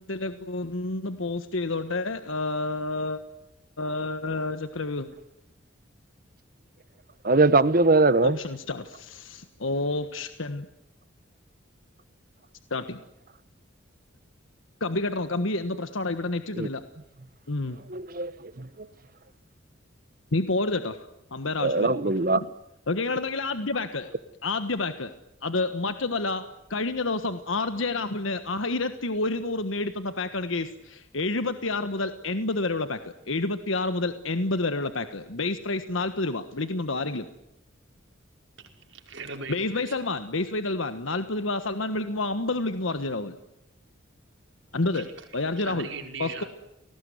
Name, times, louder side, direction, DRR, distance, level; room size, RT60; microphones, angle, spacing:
voice 1, 0.1-3.2 3.8-5.1 8.2-10.7 12.7-13.0 14.8-16.8 17.5-17.8 20.3-21.0 21.3-21.9 22.4-22.5 22.9-24.1 24.4-25.1 25.4-26.4 26.7-37.3 39.5-43.4 44.7-45.1 45.3-45.9 46.2-46.4, left 2 dB, 80° left, 1.4 m, -29 dB
voice 2, 7.2-8.4 16.6-16.7 17.9-18.3 21.6-22.4, right 3 dB, 45° right, 1.1 m, -21 dB
voice 3, 38.6-40.0 44.9-45.1 45.6-46.5, right 4 dB, 65° right, 5.3 m, -39 dB
29.5 x 19.0 x 9.5 m
head